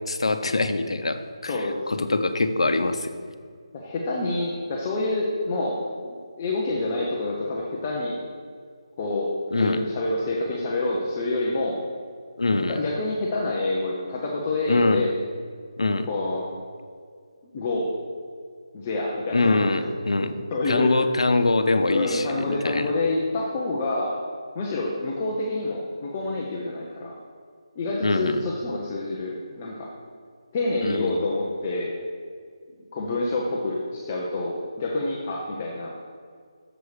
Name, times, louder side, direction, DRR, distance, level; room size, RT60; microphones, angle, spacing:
voice 1, 0.1-3.2 9.5-9.8 12.4-12.8 14.7-15.1 15.8-16.1 19.3-20.4 20.6-22.9 28.0-28.4 30.8-31.2, left 2 dB, 75° left, 8 dB, 0.6 m, -24 dB
voice 2, 1.5-2.1 3.7-8.2 9.0-9.3 9.5-11.8 12.7-15.1 16.1-16.5 17.5-17.9 18.7-19.7 20.5-21.0 21.9-24.2 24.5-27.1 27.8-29.9 30.5-31.9 32.9-35.9, left 2 dB, 15° left, -3 dB, 0.4 m, -27 dB
6.9 x 4.8 x 6.4 m, 2.1 s
hypercardioid pair, 180°, 3 cm